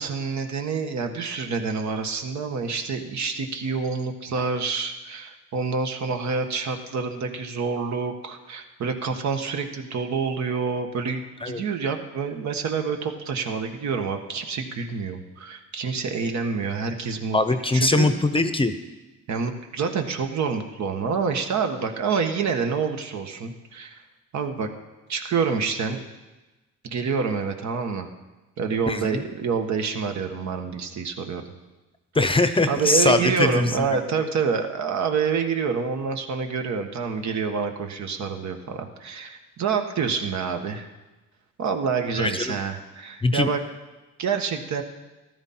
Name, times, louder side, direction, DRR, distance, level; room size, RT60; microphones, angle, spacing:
voice 1, 0.0-17.4 17.7-18.1 19.3-24.0 24.3-24.7 25.1-26.0 26.8-28.1 28.6-31.4 32.7-40.9 41.6-43.6 44.2-44.8, right 5 dB, 65° right, 5 dB, 1.5 m, -27 dB
voice 2, 17.3-18.7 28.9-29.2 32.1-34.0 42.2-42.6 43.2-43.5, left 2 dB, 20° left, 10 dB, 0.8 m, -22 dB
14.0 x 12.5 x 4.4 m, 1.1 s
cardioid pair, 90°, 30 cm